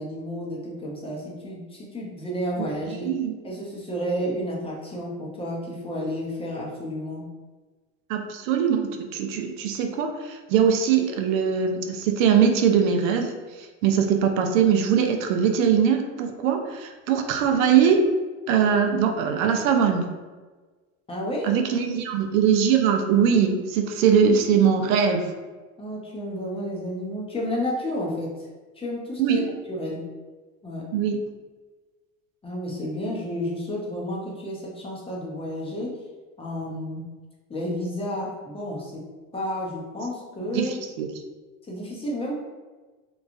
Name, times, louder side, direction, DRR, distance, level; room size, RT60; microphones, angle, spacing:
voice 1, 0.0-3.1 3.4-7.3 21.1-21.6 25.8-28.5 28.8-29.4 29.7-30.1 30.6-30.9 32.4-36.0 36.4-37.1 37.5-39.0 39.3-40.8 41.7-42.4, equal, 15° left, -3 dB, 0.6 m, -31 dB
voice 2, 3.0-3.3 8.1-18.0 18.5-20.0 21.4-25.3 29.2-29.5 30.9-31.2 40.5-41.1, right 7 dB, 75° right, 5 dB, 0.5 m, -21 dB
3.0 x 2.3 x 2.5 m, 1.3 s
hypercardioid pair, 95°, 40 cm